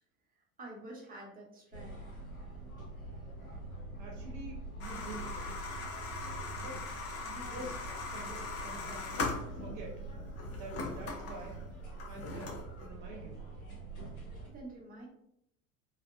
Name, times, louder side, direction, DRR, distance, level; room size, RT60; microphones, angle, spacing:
voice 1, 0.4-2.2 14.5-15.1, right 1 dB, 20° right, -2 dB, 0.7 m, -48 dB
sound 1, 1.7-14.5, right 2 dB, 90° left, 0.7 m, -45 dB
voice 2, 4.0-5.4 6.6-6.8 7.2-10.0 10.5-11.6 12.1-13.4, right 2 dB, 60° right, -1 dB, 0.8 m, -47 dB
sound 2, 4.8-9.9 10.4-12.9, left 3 dB, 35° left, 0.6 m, -40 dB
2.5 x 2.1 x 2.3 m, 0.76 s
figure-of-eight pair, 70°, 41 cm